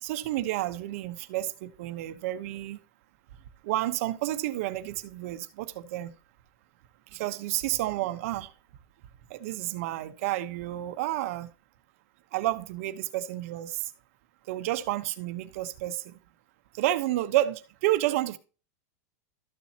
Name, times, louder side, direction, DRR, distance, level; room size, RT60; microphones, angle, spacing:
voice 1, 0.0-2.8 3.6-6.1 7.1-8.5 9.3-11.5 12.3-13.8 14.5-16.1 16.8-18.4, right 15 dB, 55° right, 1.1 m, -30 dB
13.5 x 7.2 x 2.9 m
supercardioid pair, 170°, 9 cm